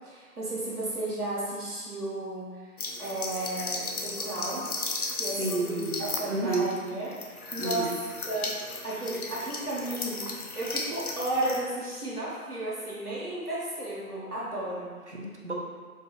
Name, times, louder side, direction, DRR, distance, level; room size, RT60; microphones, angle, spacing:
voice 1, 0.0-2.5 3.0-4.7 5.1-8.0 8.3-10.3 10.5-14.9, right 1 dB, 85° right, -7 dB, 1.2 m, -33 dB
sound 1, 2.8-11.6, left 3 dB, 75° left, 0.6 m, -36 dB
voice 2, 5.4-6.7 7.6-7.9 15.1-15.5, right 2 dB, 50° right, -2 dB, 0.6 m, -31 dB
4.5 x 2.4 x 3.0 m, 1.5 s
figure-of-eight pair, 180°, 44 cm